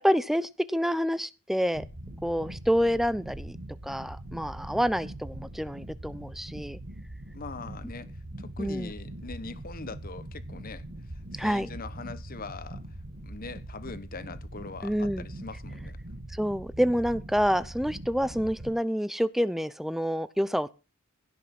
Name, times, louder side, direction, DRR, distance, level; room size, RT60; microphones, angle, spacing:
voice 1, 0.0-1.8 2.2-3.6 3.8-6.8 8.6-8.9 11.4-11.7 14.8-15.3 16.4-20.7, equal, ahead, 0.5 m, -27 dB
sound 1, 1.7-18.7, right 1 dB, 55° right, 1.8 m, -42 dB
voice 2, 7.3-16.0, left 3 dB, 40° left, 1.1 m, -42 dB
16.5 x 5.9 x 6.0 m
head